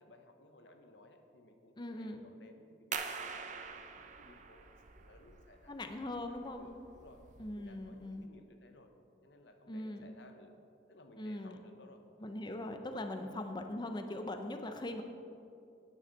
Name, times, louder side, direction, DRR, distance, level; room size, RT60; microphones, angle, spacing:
voice 1, 0.0-3.2 3.6-5.9 6.3-7.2 7.5-8.9 9.2-10.5 10.9-12.0 13.2-13.3, left 2 dB, 70° left, 6 dB, 0.9 m, -59 dB
voice 2, 1.8-2.2 5.7-6.9 7.4-8.3 9.7-10.1 11.2-11.6 12.2-15.0, left 1 dB, 25° left, 6 dB, 0.6 m, -41 dB
sound 1, 2.9-8.3, right 6 dB, 40° right, 0.5 m, -45 dB
9.6 x 9.3 x 4.0 m, 2.6 s
head